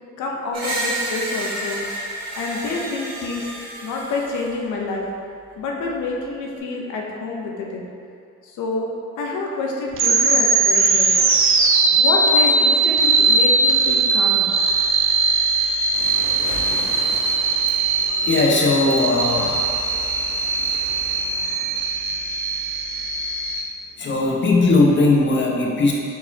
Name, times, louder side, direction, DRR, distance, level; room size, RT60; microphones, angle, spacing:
voice 1, 0.2-1.8 2.4-3.5 3.8-5.1 5.6-7.9 8.4-11.1 11.9-14.5, left 3 dB, 80° left, -1 dB, 0.7 m, -28 dB
Screech, 0.5-4.5, right 1 dB, 60° right, 1.3 m, -30 dB
sound 1, 9.9-23.6, right 3 dB, 45° right, 0.6 m, -19 dB
Waves surf, 15.9-21.9, right 1 dB, 80° right, 1.1 m, -39 dB
voice 2, 18.2-19.9 24.0-25.9, left 3 dB, 40° left, -2 dB, 0.8 m, -18 dB
4.6 x 4.1 x 2.7 m, 2.4 s
cardioid pair, 90°, 30 cm